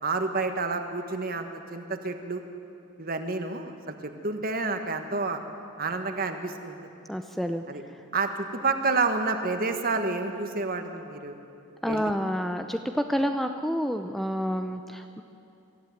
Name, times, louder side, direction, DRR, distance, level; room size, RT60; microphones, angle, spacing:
voice 1, 0.0-2.4 3.0-5.4 5.8-6.8 7.7-7.8 8.1-11.3 11.9-12.1, right 3 dB, 45° right, 6 dB, 1.5 m, -29 dB
voice 2, 7.1-7.6 11.8-15.2, equal, ahead, 6 dB, 0.5 m, -29 dB
23.5 x 14.5 x 9.4 m, 2.7 s
head